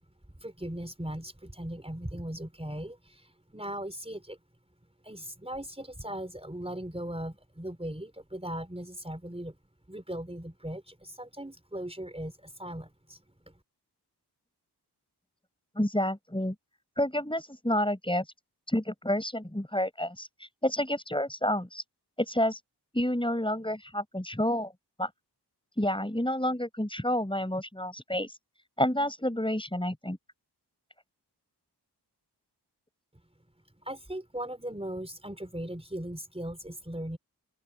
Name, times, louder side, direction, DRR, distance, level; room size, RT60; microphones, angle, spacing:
voice 1, 0.4-4.4 5.0-9.6 9.9-13.5 33.8-37.2, right 1 dB, 15° right, 4.7 m, -38 dB
voice 2, 15.8-16.6 17.0-18.2 18.7-20.3 20.6-21.8 22.2-22.6 22.9-24.7 25.0-25.1 25.8-28.3 28.8-30.2, left 1 dB, 10° left, 5.8 m, -29 dB
open air
cardioid pair, 45°, 41 cm